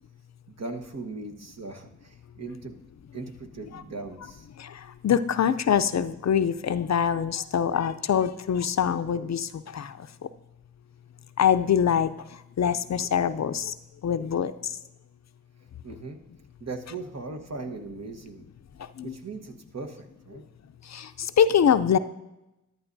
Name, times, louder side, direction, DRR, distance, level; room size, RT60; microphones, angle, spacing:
voice 1, 0.5-2.8 3.1-4.5 15.8-16.2 16.6-18.5 19.0-20.4, right 3 dB, 55° right, 5 dB, 1.2 m, -39 dB
voice 2, 4.6-10.3 11.4-13.8 14.0-14.8 18.8-19.1 20.8-22.0, left 8 dB, 55° left, 12 dB, 0.5 m, -25 dB
13.5 x 11.0 x 2.7 m, 0.94 s
cardioid pair, 40°, 32 cm